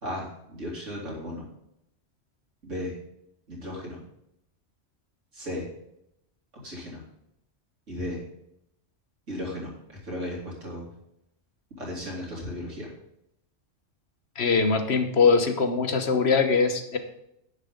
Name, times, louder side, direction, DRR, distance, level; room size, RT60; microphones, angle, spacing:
voice 1, 0.0-1.5 2.6-2.9 3.5-4.0 5.3-5.7 6.6-7.0 7.9-8.2 9.3-10.9 11.8-12.9, left 1 dB, 75° right, -3 dB, 3.4 m, -35 dB
voice 2, 14.4-17.0, left 5 dB, 60° left, 8 dB, 1.3 m, -22 dB
10.5 x 9.4 x 3.8 m, 0.80 s
omnidirectional pair, 1.3 m